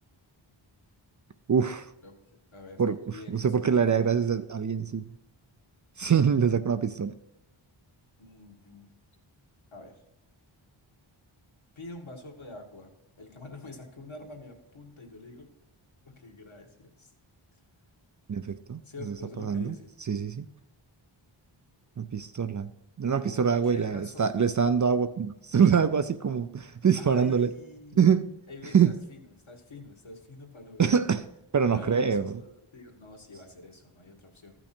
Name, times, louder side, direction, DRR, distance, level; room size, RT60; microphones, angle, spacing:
voice 1, 1.5-1.9 2.8-3.0 3.3-5.0 6.0-7.1 18.3-18.8 19.1-19.7 20.1-20.5 22.0-22.7 23.0-27.5 28.0-28.3 28.7-28.9 30.8-31.2 31.5-32.3, right 7 dB, 40° right, 0.4 m, -24 dB
voice 2, 2.5-3.5 8.2-8.9 9.7-10.0 11.8-12.9 13.2-15.5 16.0-17.1 17.5-17.6 18.8-19.9 23.0-24.3 27.0-28.0 28.5-30.8 31.7-34.5, left 2 dB, 70° left, 1.9 m, -46 dB
14.0 x 6.0 x 4.3 m
wide cardioid pair, 70°, 49 cm